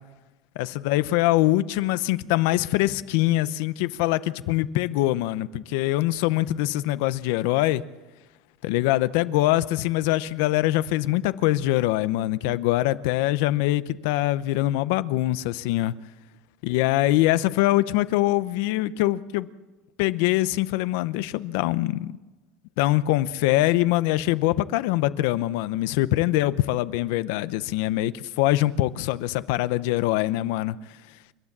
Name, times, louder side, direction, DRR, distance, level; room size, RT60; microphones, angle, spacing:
voice 1, 0.6-7.8 8.6-15.9 16.6-19.5 20.0-22.2 22.8-30.8, left 16 dB, 80° left, 0.7 m, -23 dB
29.5 x 12.5 x 7.4 m
cardioid pair, 165°, 0 cm